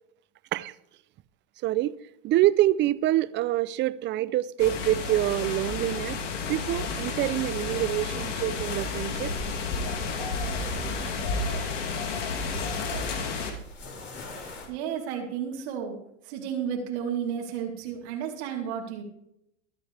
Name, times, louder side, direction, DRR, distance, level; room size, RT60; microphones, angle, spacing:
voice 1, 1.6-1.9 2.2-6.2 6.5-9.3, right 14 dB, 30° right, 0.6 m, -26 dB
sound 1, 4.6-13.5, left 4 dB, 75° left, 3.2 m, -31 dB
sound 2, 8.6-14.7, left 2 dB, 30° left, 5.5 m, -42 dB
voice 2, 14.7-16.0 16.2-19.0, right 8 dB, 60° right, 3.8 m, -32 dB
23.0 x 9.2 x 3.4 m
hypercardioid pair, 120°, 37 cm